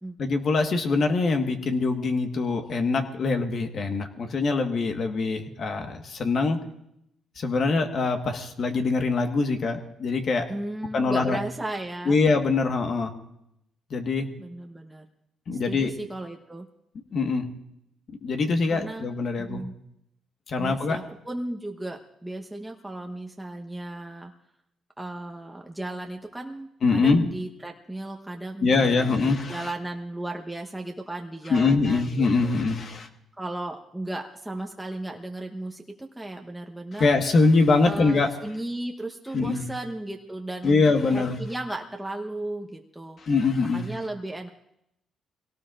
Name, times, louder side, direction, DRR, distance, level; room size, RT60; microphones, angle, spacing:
voice 1, 0.2-6.6 7.4-10.5 10.9-11.4 12.0-13.1 13.9-14.3 15.5-15.9 17.1-17.5 18.2-19.6 20.5-21.0 26.8-27.2 28.6-29.7 31.5-33.1 37.0-38.3 39.3-39.6 40.6-41.4 43.2-43.9, left 3 dB, 55° left, 5 dB, 1.4 m, -23 dB
voice 2, 10.5-12.2 14.4-15.0 15.6-16.7 18.7-19.7 20.6-24.3 25.0-32.1 32.4-32.5 33.3-37.1 37.8-40.8 41.1-43.2 43.7-44.5, right 1 dB, 5° right, 1 dB, 1.1 m, -35 dB
23.0 x 17.5 x 2.5 m, 0.78 s
cardioid pair, 90°, 0 cm